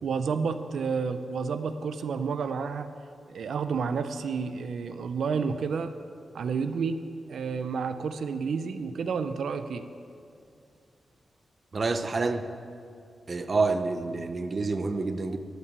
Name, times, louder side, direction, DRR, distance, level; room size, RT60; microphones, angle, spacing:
voice 1, 0.0-2.9 3.3-5.9 6.3-7.0 7.3-9.8, right 5 dB, 85° right, 10 dB, 0.5 m, -30 dB
voice 2, 11.7-12.5 13.3-15.4, right 3 dB, 35° right, 9 dB, 0.5 m, -28 dB
12.0 x 5.7 x 8.2 m, 2.4 s
wide cardioid pair, 135°, 0 cm